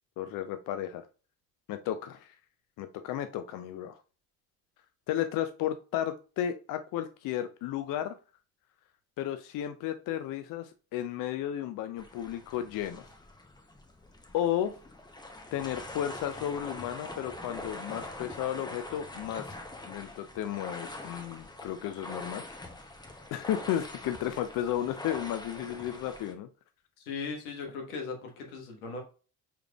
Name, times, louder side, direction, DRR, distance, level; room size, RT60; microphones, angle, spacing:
voice 1, 0.2-1.0 1.7-2.3 2.8-4.0 5.1-8.1 9.2-13.0 14.3-14.7 15.5-19.5 19.8-22.4 23.3-26.5, left 11 dB, 50° left, 9 dB, 0.5 m, -33 dB
sound 1, 12.0-26.3, left 2 dB, 10° left, 0.7 m, -44 dB
voice 2, 27.1-29.0, left 4 dB, 80° left, 2 dB, 1.3 m, -38 dB
4.8 x 3.4 x 2.3 m, 0.36 s
hypercardioid pair, 50°, 44 cm